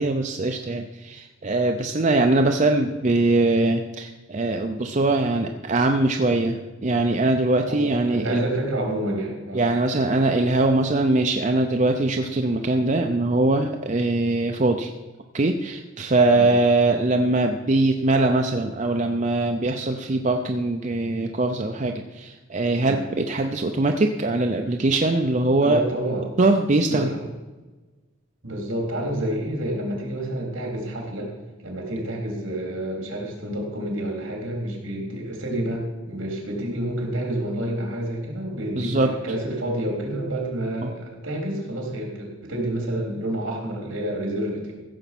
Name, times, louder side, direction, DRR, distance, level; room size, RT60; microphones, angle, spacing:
voice 1, 0.0-8.4 9.5-14.9 15.3-25.8 26.4-27.1 38.8-39.1 40.8-40.9, right 2 dB, 35° right, 4 dB, 0.6 m, -22 dB
voice 2, 7.7-9.6 16.3-16.5 22.8-23.0 25.6-26.3 26.9-27.3 28.4-31.3 31.6-44.7, right 1 dB, 70° right, 0 dB, 3.7 m, -29 dB
15.5 x 7.1 x 6.0 m, 1.2 s
head